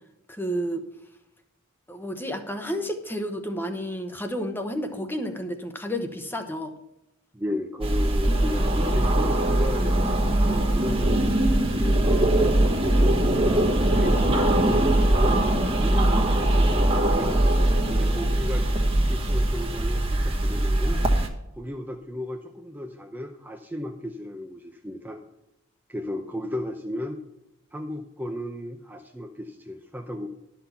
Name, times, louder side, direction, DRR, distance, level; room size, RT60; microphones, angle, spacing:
voice 1, 0.3-0.8 1.9-6.7, equal, 10° left, 6 dB, 1.0 m, -31 dB
voice 2, 7.3-10.0 10.4-12.3 13.2-15.4 15.8-17.4 17.9-18.7 19.1-21.0 21.6-25.2 25.9-27.2 27.7-30.3, left 1 dB, 10° right, 2 dB, 0.6 m, -34 dB
sound 1, 7.8-21.3, right 1 dB, 30° right, 1.1 m, -21 dB
12.0 x 6.0 x 5.7 m, 0.91 s
head